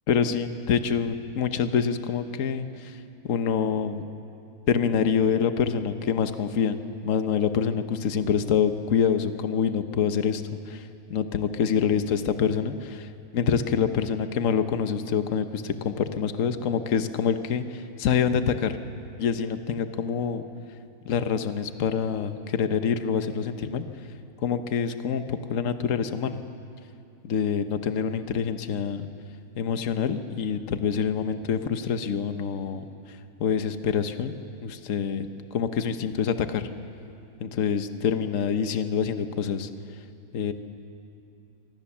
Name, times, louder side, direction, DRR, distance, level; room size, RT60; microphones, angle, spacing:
voice 1, 0.1-3.0 3.2-4.0 4.7-18.8 19.2-20.4 21.0-23.9 24.4-26.4 27.2-29.1 29.6-34.3 34.6-36.7 37.4-39.7 40.3-40.5, left 7 dB, 60° left, 9 dB, 1.3 m, -26 dB
26.0 x 24.0 x 7.3 m, 2.7 s
omnidirectional pair, 1.6 m